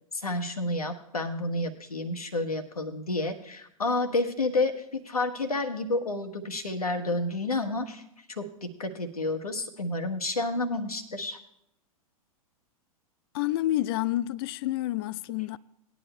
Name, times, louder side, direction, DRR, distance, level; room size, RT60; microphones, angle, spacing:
voice 1, 0.1-8.0 8.3-11.4, left 2 dB, 85° left, 1.3 m, -30 dB
voice 2, 13.3-15.6, left 15 dB, 40° left, 0.4 m, -29 dB
19.0 x 10.0 x 2.2 m
figure-of-eight pair, 100°, 19 cm